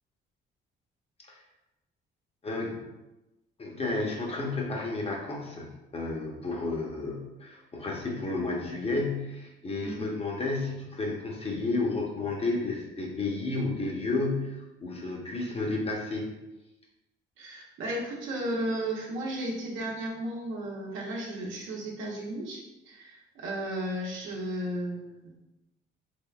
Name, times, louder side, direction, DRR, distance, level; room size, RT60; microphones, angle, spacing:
voice 1, 2.4-2.8 3.6-16.3, left 3 dB, 30° left, -1 dB, 0.9 m, -32 dB
voice 2, 17.4-25.3, right 1 dB, 85° right, -2 dB, 0.8 m, -34 dB
3.5 x 3.3 x 2.4 m, 0.99 s
cardioid pair, 90°, 20 cm